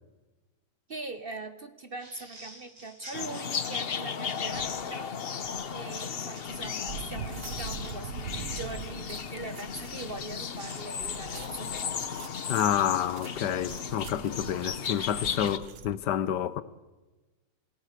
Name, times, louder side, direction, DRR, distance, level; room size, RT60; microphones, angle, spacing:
voice 1, 0.9-5.1 5.7-11.7, right 3 dB, 40° right, 0.9 m, -41 dB
sound 1, 2.0-4.5 6.3-6.6 7.1-7.9 10.0-11.9, right 1 dB, 65° right, 5.8 m, -50 dB
sound 2, 3.1-15.6, left 7 dB, 45° left, 0.9 m, -35 dB
sound 3, 4.5-4.8 5.4-16.0, right 8 dB, 85° right, 1.7 m, -44 dB
voice 2, 12.5-16.6, left 10 dB, 75° left, 1.4 m, -29 dB
27.0 x 17.0 x 6.6 m
omnidirectional pair, 1.9 m